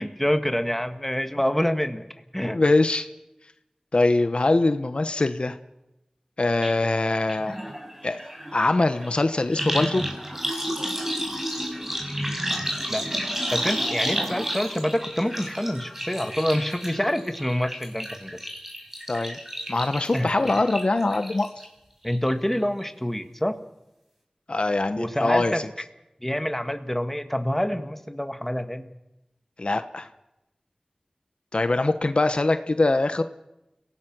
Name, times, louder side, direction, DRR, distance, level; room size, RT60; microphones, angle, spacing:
voice 1, 0.0-2.0 2.3-2.6 12.9-13.1 13.5-18.4 20.1-20.3 22.0-23.6 25.0-25.6 26.2-28.9, equal, 10° left, 7 dB, 1.8 m, -26 dB
voice 2, 2.5-3.1 3.9-5.6 6.4-7.6 8.0-8.2 8.5-10.0 19.1-19.4 19.7-21.5 24.5-25.6 29.6-30.1 31.5-33.2, left 2 dB, 60° left, 10 dB, 1.0 m, -23 dB
sound 1, 6.6-6.7 7.0-21.6 22.0-22.5 22.8-22.9, equal, 15° right, 5.0 m, -31 dB
30.0 x 17.5 x 6.1 m, 0.92 s
wide cardioid pair, 55°, 2 cm